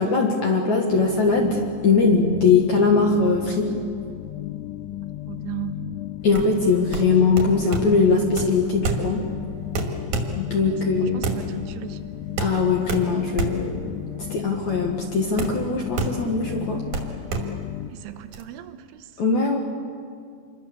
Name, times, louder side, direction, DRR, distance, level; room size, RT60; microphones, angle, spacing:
voice 1, 0.0-3.7 6.2-9.3 10.4-11.3 12.4-14.0 14.3-16.8 19.2-19.6, left 4 dB, 65° left, 1 dB, 1.9 m, -21 dB
sound 1, 0.9-17.9, left 14 dB, 80° left, 2.7 m, -34 dB
voice 2, 5.3-5.9 10.6-12.0 17.9-19.1, right 13 dB, 75° right, 10 dB, 3.3 m, -36 dB
sound 2, 6.2-18.4, right 3 dB, 50° right, 2.8 m, -30 dB
28.0 x 23.0 x 7.1 m, 2.2 s
omnidirectional pair, 6.0 m